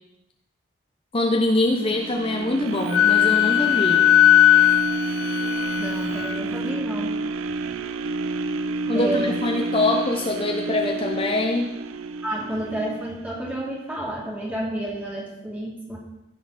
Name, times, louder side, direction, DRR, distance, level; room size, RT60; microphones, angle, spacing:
voice 1, 1.1-4.0 8.9-11.7, left 2 dB, 25° left, 2 dB, 0.7 m, -24 dB
sound 1, 1.7-13.8 14.3-14.4, right 3 dB, 90° right, 0.5 m, -30 dB
Wind instrument woodwind instrument, 2.9-6.4, left 12 dB, 85° left, 0.3 m, -18 dB
voice 2, 5.8-7.1 8.9-9.3 12.2-16.0, right 1 dB, 10° right, -4 dB, 2.5 m, -30 dB
15.0 x 6.6 x 4.1 m, 0.94 s
head